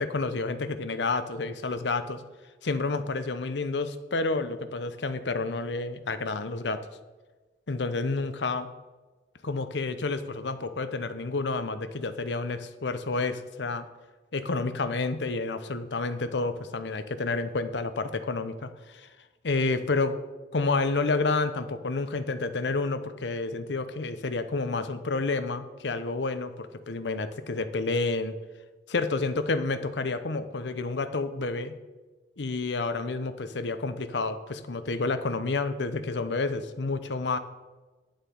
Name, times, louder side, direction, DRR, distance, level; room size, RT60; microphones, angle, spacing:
voice 1, 0.0-2.2 2.6-6.8 7.7-8.7 9.4-13.8 14.3-19.1 19.4-20.2 20.5-28.4 28.9-31.8 32.4-37.4, left 3 dB, 80° left, 10 dB, 0.8 m, -29 dB
9.2 x 7.2 x 5.4 m, 1.2 s
head